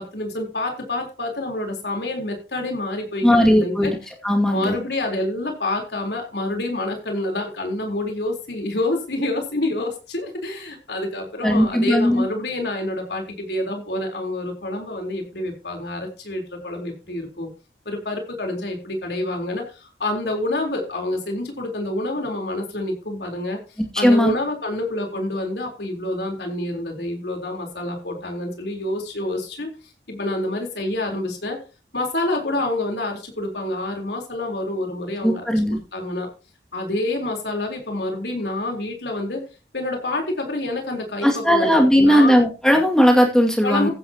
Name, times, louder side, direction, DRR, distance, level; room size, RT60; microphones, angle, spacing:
voice 1, 0.0-4.0 4.5-17.5 17.9-23.6 24.0-29.7 30.1-31.6 31.9-35.4 35.7-36.3 36.7-39.4 39.7-42.4 43.6-43.9, left 1 dB, 75° left, 2 dB, 4.0 m, -27 dB
voice 2, 3.2-4.0 4.2-4.7 11.4-12.3 23.9-24.3 35.2-35.8 41.2-43.9, equal, 5° left, 1 dB, 2.3 m, -17 dB
15.0 x 9.3 x 2.9 m, 0.33 s
head